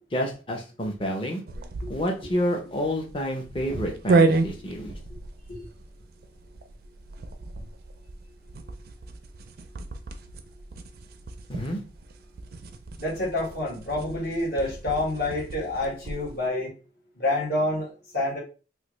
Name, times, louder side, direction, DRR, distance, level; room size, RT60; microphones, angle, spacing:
voice 1, 0.1-1.4 1.9-5.0 11.5-11.8, equal, 25° left, 1 dB, 0.6 m, -29 dB
sound 1, 1.5-16.4, right 3 dB, 55° right, 0.4 m, -31 dB
voice 2, 13.0-16.7 17.2-18.4, left 2 dB, 50° left, -4 dB, 1.4 m, -28 dB
3.3 x 2.4 x 3.0 m, 0.33 s
head